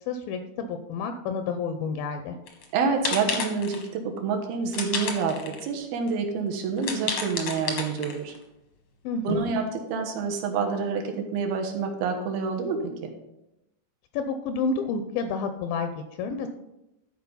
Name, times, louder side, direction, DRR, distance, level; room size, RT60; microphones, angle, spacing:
voice 1, 0.1-2.4 9.0-9.5 14.1-16.5, left 4 dB, 80° left, 8 dB, 2.3 m, -30 dB
sound 1, 2.5-2.7 3.0-3.9 4.7-5.7 6.1-6.2 6.8-8.4, left 5 dB, 65° left, 1.3 m, -31 dB
voice 2, 2.7-8.3 9.2-13.1, right 5 dB, 75° right, 3 dB, 3.0 m, -28 dB
12.5 x 4.7 x 5.5 m, 0.90 s
omnidirectional pair, 4.4 m